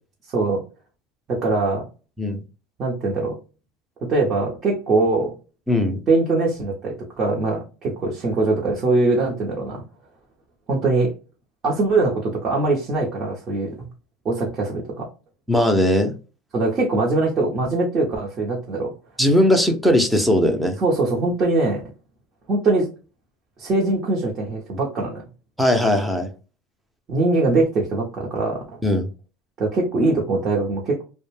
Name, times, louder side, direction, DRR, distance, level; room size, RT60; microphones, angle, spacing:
voice 1, 1.3-1.9 2.8-3.4 4.1-5.3 6.1-9.8 10.7-11.1 11.6-13.7 14.2-15.1 16.5-18.9 20.8-21.8 22.5-22.9 23.6-25.2 27.1-28.8 29.6-31.0, right 3 dB, 40° right, 0.8 m, -22 dB
voice 2, 5.7-6.0 15.5-16.1 19.2-20.8 25.6-26.3 28.8-29.1, left 1 dB, 5° right, 0.6 m, -19 dB
2.4 x 2.1 x 3.2 m
supercardioid pair, 105°, 0 cm